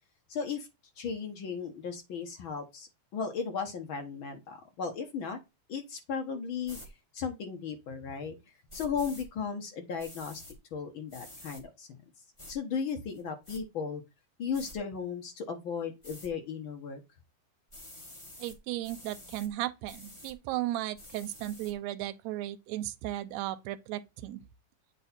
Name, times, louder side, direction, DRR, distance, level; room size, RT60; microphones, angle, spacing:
voice 1, 0.3-0.7 1.0-5.4 5.7-6.8 7.1-8.4 8.7-10.4 10.7-11.9 12.5-14.0 14.4-17.0, left 6 dB, 60° left, 1.4 m, -36 dB
sound 1, 6.6-6.9 8.7-9.3 10.0-10.6 11.1-11.6 12.4-12.5 13.1-13.6 14.5-14.8 16.0-16.3 17.7-18.6 18.8-19.5 19.9-20.3 21.0-21.7, left 1 dB, 25° left, 0.6 m, -49 dB
voice 2, 18.4-24.4, right 14 dB, 75° right, 1.8 m, -35 dB
8.3 x 3.1 x 4.3 m
omnidirectional pair, 3.7 m